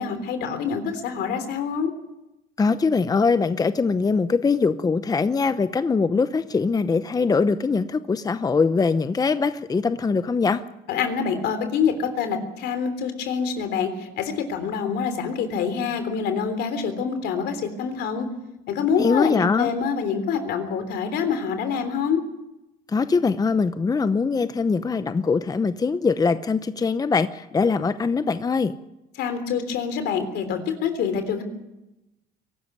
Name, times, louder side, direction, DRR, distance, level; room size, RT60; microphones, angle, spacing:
voice 1, 0.0-1.9 10.9-18.3 18.7-22.2 29.2-31.4, left 6 dB, 80° left, 9 dB, 3.5 m, -26 dB
voice 2, 2.6-10.6 19.0-19.7 22.9-28.7, left 4 dB, 20° left, 12 dB, 0.8 m, -22 dB
23.0 x 13.0 x 9.5 m, 0.94 s
cardioid pair, 110°, 17 cm